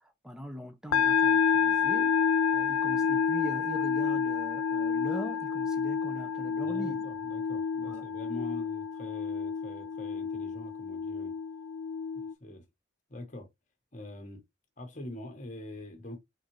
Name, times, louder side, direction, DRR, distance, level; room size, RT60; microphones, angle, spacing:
voice 1, 0.2-2.2 2.5-7.1 7.8-8.0, equal, 5° right, 0.6 m, -41 dB
sound 1, 0.9-12.3, left 6 dB, 75° left, 0.4 m, -29 dB
voice 2, 6.6-11.3 12.1-12.6 13.1-13.5 13.9-14.4 14.8-16.2, left 1 dB, 40° left, 1.2 m, -44 dB
4.0 x 3.8 x 3.1 m
head